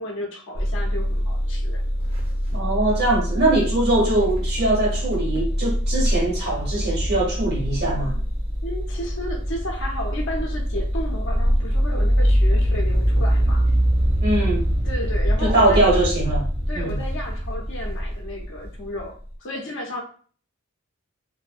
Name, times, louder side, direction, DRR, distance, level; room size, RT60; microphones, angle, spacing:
voice 1, 0.0-1.8 8.6-13.7 14.8-15.9 16.7-20.0, equal, 60° left, 0.6 m, -33 dB
sound 1, 0.5-19.0, equal, 30° right, 0.6 m, -23 dB
voice 2, 2.5-8.2 14.2-14.6 15.4-16.5 16.7-17.0, right 2 dB, 50° right, 1.0 m, -22 dB
2.6 x 2.0 x 2.4 m
head